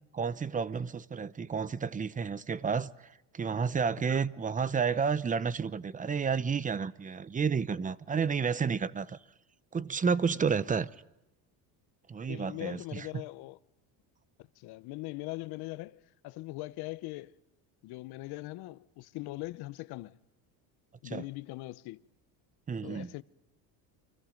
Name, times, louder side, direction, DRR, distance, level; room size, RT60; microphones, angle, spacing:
voice 1, 0.1-3.1 3.3-9.2 9.7-10.9 12.1-13.1 21.0-21.2 22.7-23.1, right 6 dB, 20° right, 0.8 m, -31 dB
voice 2, 12.3-13.6 14.6-17.3 17.8-20.2 21.0-22.0 22.8-23.2, left 20 dB, 65° left, 1.0 m, -41 dB
29.5 x 25.5 x 5.2 m
cardioid pair, 120°, 41 cm